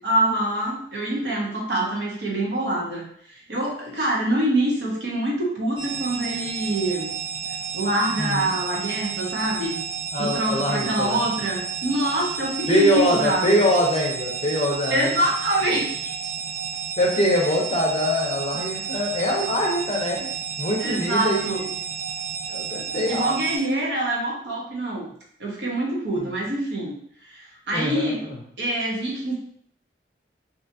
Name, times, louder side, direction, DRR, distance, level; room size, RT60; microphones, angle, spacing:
voice 1, 0.0-7.1 7.7-9.8 10.2-13.6 14.9-16.1 20.8-21.6 23.1-25.1 25.4-26.9 27.2-28.2 28.6-29.3, right 1 dB, 80° right, -3 dB, 0.8 m, -25 dB
sound 1, 5.8-23.6, right 7 dB, 30° right, 0.5 m, -32 dB
voice 2, 8.2-8.5 10.1-11.5 12.7-15.1 17.0-20.3 20.6-21.7 22.5-23.4 26.1-26.3 27.7-28.4, equal, 35° left, -1 dB, 0.5 m, -23 dB
2.6 x 2.3 x 2.6 m, 0.64 s
head